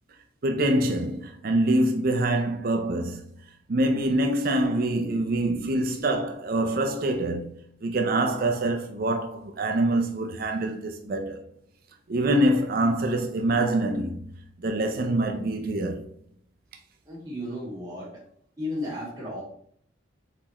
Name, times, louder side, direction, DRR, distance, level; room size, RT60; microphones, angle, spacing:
voice 1, 0.4-3.3 3.7-7.5 7.8-11.4 12.1-14.3 14.6-16.0, right 1 dB, 45° right, 0.5 m, -25 dB
voice 2, 17.1-18.2 18.6-19.4, left 1 dB, 20° right, 1.8 m, -34 dB
4.2 x 4.1 x 2.9 m
head